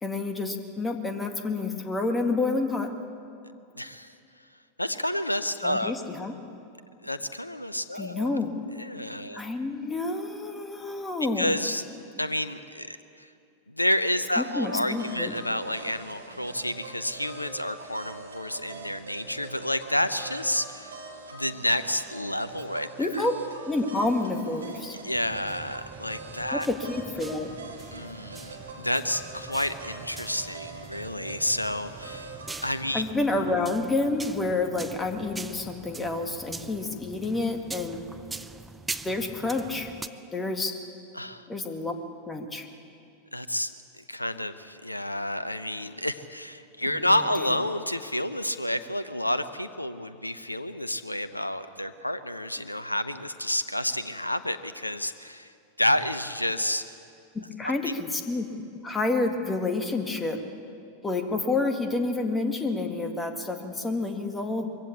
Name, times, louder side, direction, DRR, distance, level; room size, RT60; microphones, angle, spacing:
voice 1, 0.0-2.9 5.6-6.3 8.0-8.5 9.3-11.6 14.4-15.3 23.0-23.3 23.6-25.0 26.5-27.5 32.9-38.0 39.0-39.9 40.3-40.7 41.5-42.0 42.3-42.7 46.9-47.1 57.3-58.5 58.8-60.4 61.0-64.7, left 3 dB, 15° left, 5 dB, 1.9 m, -29 dB
voice 2, 3.8-4.1 4.8-5.9 7.0-8.4 8.8-9.4 11.4-11.8 12.2-13.3 13.7-20.9 21.3-23.2 25.0-26.7 27.9-32.3 32.6-33.0 41.1-41.4 43.3-43.7 44.0-55.5 55.8-56.8 57.8-57.9, left 1 dB, 85° left, 13 dB, 0.7 m, -30 dB
sound 1, 14.6-32.6, right 4 dB, 70° right, 2.5 m, -43 dB
sound 2, 25.1-40.1, right 3 dB, 10° right, 0.7 m, -43 dB
22.5 x 16.0 x 8.5 m, 2.5 s
figure-of-eight pair, 90°, 0 cm